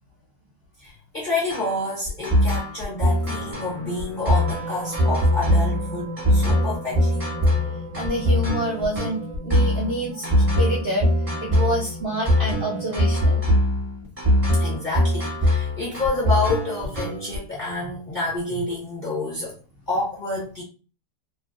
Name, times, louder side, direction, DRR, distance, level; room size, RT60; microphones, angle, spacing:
voice 1, 0.8-7.2 14.5-19.6 19.9-20.6, left 2 dB, 40° left, 0.6 m, -28 dB
sound 1, 1.5-17.4, left 1 dB, 20° right, 1.1 m, -22 dB
sound 2, 3.2-9.1, left 1 dB, 85° left, 1.4 m, -44 dB
sound 3, 4.3-12.9, right 2 dB, 85° right, 1.3 m, -37 dB
voice 2, 8.0-11.1 11.4-13.4, right 1 dB, 70° right, 0.5 m, -27 dB
2.9 x 2.5 x 2.4 m
omnidirectional pair, 1.9 m